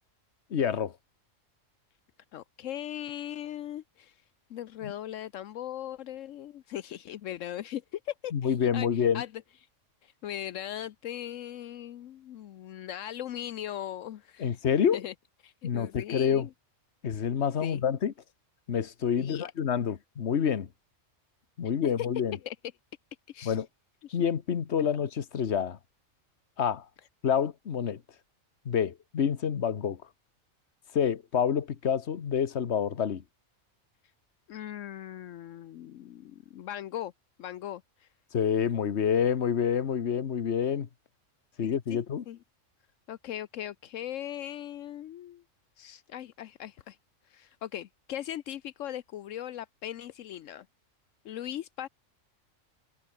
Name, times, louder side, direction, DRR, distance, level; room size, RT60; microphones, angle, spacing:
voice 1, 0.5-0.9 4.8-4.9 8.3-9.2 14.4-15.0 15.6-16.5 17.0-18.1 18.7-20.7 21.6-22.4 23.4-23.7 24.1-25.8 26.6-26.8 27.2-28.0 28.6-30.0 30.9-33.2 38.3-40.9 41.6-42.2, left 8 dB, 60° left, 1.4 m, -27 dB
voice 2, 2.3-4.2 4.5-9.3 10.0-14.6 14.9-15.1 15.4-16.5 17.6-17.8 19.2-19.5 21.8-22.1 22.4-22.6 23.3-23.6 34.5-37.1 37.4-38.1 41.6-42.0 42.3-42.4 43.1-45.4 45.8-47.0 47.3-50.7 51.2-51.9, left 11 dB, 80° left, 1.1 m, -39 dB
omnidirectional pair, 1.3 m